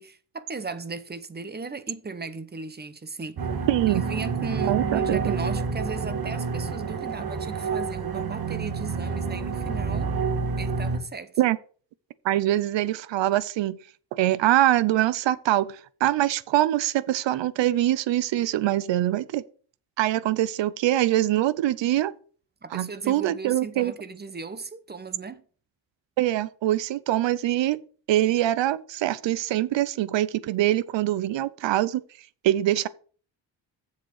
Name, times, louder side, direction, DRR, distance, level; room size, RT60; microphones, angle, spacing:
voice 1, 0.0-3.5 3.9-10.1 10.6-11.3 22.6-25.4, right 4 dB, 25° right, 0.8 m, -36 dB
sound 1, 3.4-11.0, right 5 dB, 55° right, 1.8 m, -28 dB
voice 2, 3.7-4.0 4.7-5.2 11.4-11.6 12.2-13.8 14.1-15.8 16.0-19.4 20.0-22.1 22.7-23.9 26.2-27.8 28.1-32.0 32.4-32.9, right 14 dB, 85° right, 0.7 m, -23 dB
7.4 x 6.6 x 6.5 m
cardioid pair, 115°, 43 cm